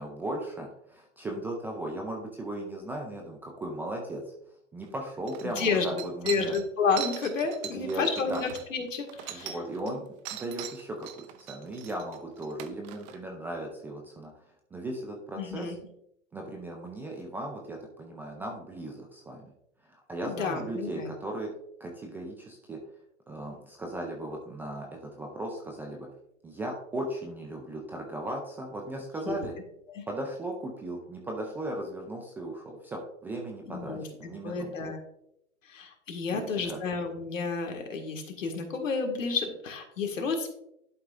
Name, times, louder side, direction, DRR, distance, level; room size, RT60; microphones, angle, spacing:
voice 1, 0.0-4.2 4.7-6.5 7.7-8.0 8.3-8.4 9.3-10.0 10.3-14.3 14.7-15.8 16.3-19.5 19.9-21.5 21.8-22.8 23.3-26.1 26.4-29.5 30.1-34.8 36.3-36.8, right 1 dB, 5° right, 0 dB, 0.3 m, -37 dB
sound 1, 4.8-4.9 5.3-9.9 10.2-13.2, right 12 dB, 35° right, 0.7 m, -41 dB
voice 2, 5.4-5.9 6.2-9.6 9.9-10.0 15.4-15.8 20.2-21.1 29.2-29.4 29.9-30.0 33.7-34.0 34.4-35.0 35.7-40.5, left 4 dB, 80° left, 4 dB, 1.9 m, -31 dB
11.5 x 5.4 x 2.5 m, 0.77 s
hypercardioid pair, 125°, 38 cm